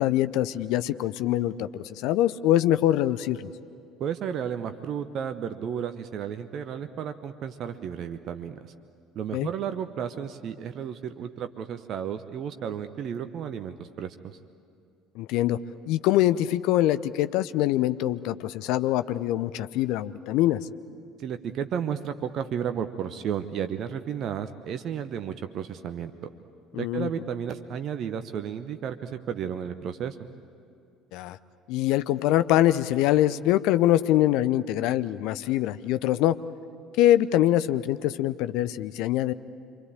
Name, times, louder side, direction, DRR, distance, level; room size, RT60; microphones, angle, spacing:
voice 1, 0.0-3.5 9.3-9.5 15.1-20.6 26.7-27.1 31.1-31.4 31.7-36.4 37.0-39.3, left 13 dB, 60° left, 13 dB, 0.7 m, -24 dB
voice 2, 4.0-8.7 9.1-14.4 21.2-26.1 26.8-30.2, right 8 dB, 50° right, 9 dB, 1.0 m, -33 dB
27.5 x 24.0 x 8.9 m, 2.5 s
figure-of-eight pair, 60°, 0 cm